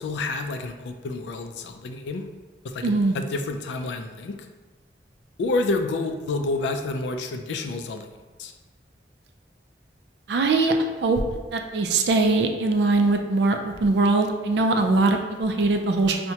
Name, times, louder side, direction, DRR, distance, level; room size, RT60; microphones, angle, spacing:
voice 1, 0.0-2.3 2.7-4.4 5.4-8.1 8.4-8.5, left 2 dB, 80° left, 7 dB, 0.4 m, -29 dB
voice 2, 2.8-3.1 10.3-11.2 11.5-16.3, right 3 dB, 65° right, 4 dB, 0.4 m, -21 dB
5.6 x 2.1 x 2.8 m, 1.2 s
head